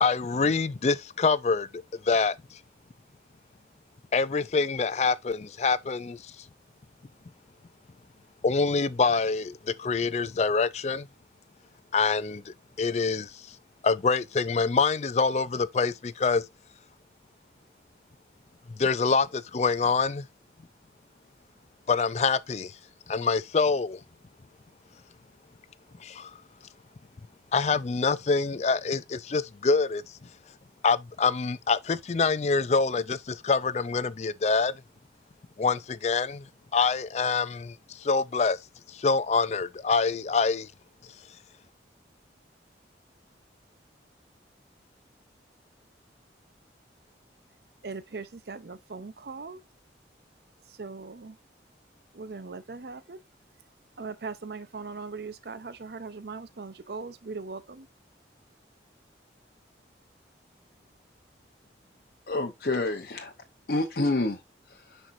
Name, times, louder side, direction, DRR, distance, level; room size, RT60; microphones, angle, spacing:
voice 1, 0.0-2.6 4.1-6.3 8.4-11.1 11.9-13.6 13.8-16.4 18.8-20.3 21.9-22.8 23.1-24.0 26.0-26.4 27.5-30.2 30.8-34.7 35.6-36.5 36.7-38.6 38.9-40.7, left 4 dB, 35° left, 0.4 m, -26 dB
voice 2, 47.8-49.6 50.7-51.4 52.1-53.2 54.0-57.9, right 4 dB, 60° right, 0.6 m, -39 dB
voice 3, 62.3-63.3 63.7-64.4 64.7-65.0, left 2 dB, 55° left, 0.7 m, -28 dB
9.9 x 4.5 x 2.6 m
head